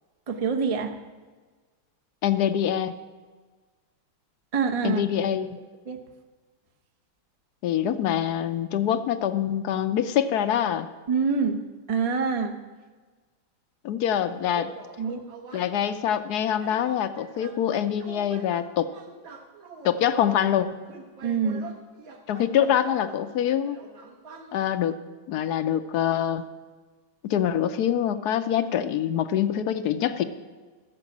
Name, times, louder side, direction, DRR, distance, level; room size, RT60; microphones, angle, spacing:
voice 1, 0.3-1.0 4.5-5.0 5.9-6.0 11.1-11.6 11.9-12.6 15.0-15.2 21.2-21.7, right 5 dB, 45° right, 4 dB, 0.4 m, -25 dB
voice 2, 2.2-2.9 4.8-5.5 7.6-10.9 13.8-14.7 15.5-18.9 19.8-20.8 22.3-23.8 24.5-25.0 25.3-26.4 27.2-30.2, left 10 dB, 70° left, 11 dB, 1.0 m, -25 dB
sound 1, 14.5-15.7 16.6-23.2 23.5-24.7, right 5 dB, 70° right, 2.2 m, -44 dB
14.0 x 6.9 x 8.4 m, 1.4 s
omnidirectional pair, 2.2 m